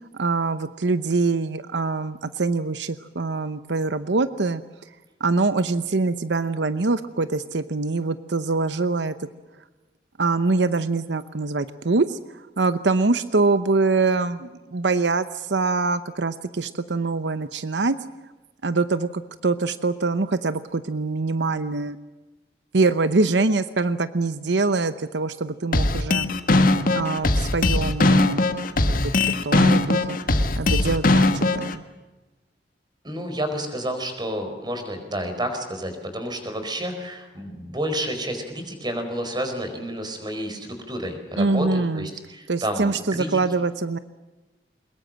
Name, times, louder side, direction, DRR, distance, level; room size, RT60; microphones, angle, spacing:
voice 1, 0.1-4.6 5.2-9.1 10.2-12.2 12.6-18.0 18.6-22.0 22.7-26.3 26.9-28.4 28.8-30.2 30.6-31.8 41.4-42.1 42.5-44.0, right 3 dB, 85° right, 13 dB, 0.8 m, -24 dB
sound 1, 25.7-31.7, left 2 dB, 55° left, 1.6 m, -19 dB
voice 2, 33.0-43.4, equal, 25° right, 6 dB, 4.6 m, -30 dB
23.0 x 21.5 x 7.6 m, 1.2 s
head